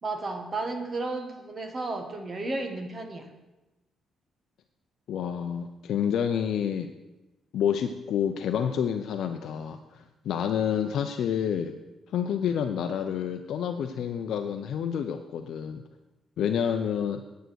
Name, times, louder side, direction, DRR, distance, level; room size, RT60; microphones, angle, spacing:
voice 1, 0.0-3.3, right 2 dB, 25° right, 5 dB, 1.4 m, -33 dB
voice 2, 5.1-6.9 7.5-11.7 12.1-15.8 16.4-17.2, left 8 dB, 65° left, 6 dB, 0.6 m, -28 dB
9.5 x 9.1 x 6.3 m, 1.0 s
cardioid pair, 160°, 0 cm